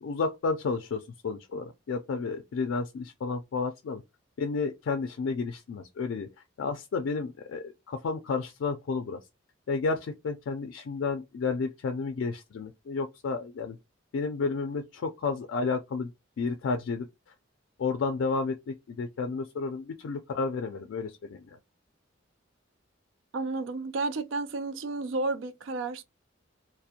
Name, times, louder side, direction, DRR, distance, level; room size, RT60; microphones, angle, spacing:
voice 1, 0.0-4.0 4.4-6.3 6.6-9.2 9.7-13.8 14.1-16.1 16.4-17.1 17.8-21.5, left 4 dB, 75° left, 0.3 m, -31 dB
voice 2, 23.3-26.0, right 3 dB, 70° right, 0.4 m, -32 dB
2.4 x 2.0 x 2.6 m
head